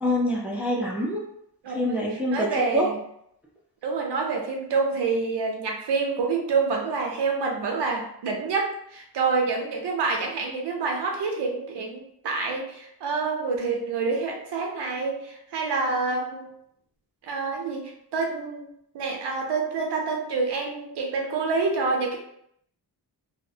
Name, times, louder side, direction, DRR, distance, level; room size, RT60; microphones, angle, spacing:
voice 1, 0.0-1.2 1.7-2.9, equal, 5° right, -3 dB, 0.3 m, -25 dB
voice 2, 1.6-2.0 2.3-3.0 3.8-16.5 17.2-18.7 18.9-22.2, right 4 dB, 90° right, 1 dB, 0.7 m, -27 dB
2.3 x 2.1 x 2.6 m, 0.71 s
wide cardioid pair, 145°, 40 cm